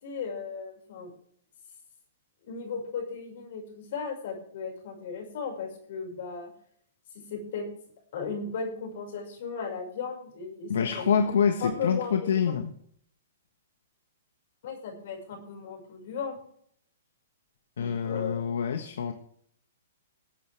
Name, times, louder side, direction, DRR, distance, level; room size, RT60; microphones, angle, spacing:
voice 1, 0.0-1.1 2.5-6.5 7.1-7.7 8.1-11.0 11.6-12.5 14.6-16.4 17.8-18.5, left 5 dB, 60° left, 3 dB, 5.9 m, -36 dB
voice 2, 10.7-12.7 17.8-19.1, left 7 dB, 75° left, 7 dB, 1.4 m, -26 dB
20.5 x 8.8 x 3.5 m, 0.65 s
hypercardioid pair, 135°, 0 cm